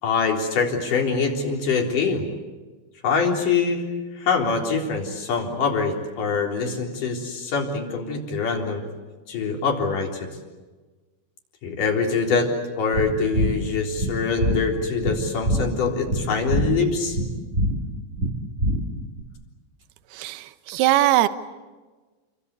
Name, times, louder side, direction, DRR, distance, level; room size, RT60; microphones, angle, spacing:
voice 1, 0.0-2.2 3.0-3.8 4.2-8.8 9.3-10.3 11.6-12.5 12.8-17.2, left 5 dB, 45° left, 2 dB, 5.0 m, -24 dB
sound 1, 12.9-19.2, equal, 20° right, 1.6 m, -26 dB
voice 2, 20.1-21.3, right 14 dB, 70° right, 11 dB, 2.8 m, -20 dB
29.5 x 23.5 x 8.3 m, 1.3 s
omnidirectional pair, 5.4 m